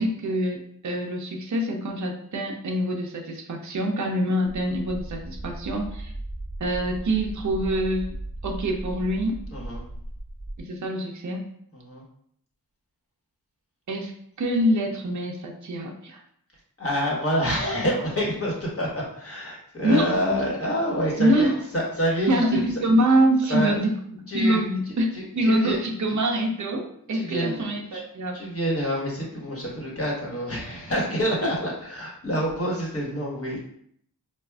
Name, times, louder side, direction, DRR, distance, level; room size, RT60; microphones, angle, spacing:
voice 1, 0.0-6.1 6.6-8.1 8.4-9.4 10.6-11.5 13.9-14.1 14.4-16.2 19.8-20.0 21.2-21.6 22.3-23.9 24.3-25.1 25.4-28.4, right 1 dB, 50° right, 1 dB, 0.6 m, -25 dB
sound 1, 4.5-10.6, right 1 dB, 10° left, 1.2 m, -36 dB
voice 2, 9.5-9.8 11.7-12.0 16.8-22.6 23.5-23.8 24.3-24.6 25.1-25.8 27.1-27.6 27.9-28.0 28.3-33.6, equal, 35° left, -4 dB, 1.3 m, -27 dB
4.4 x 2.4 x 2.3 m, 0.68 s
cardioid pair, 55°, 38 cm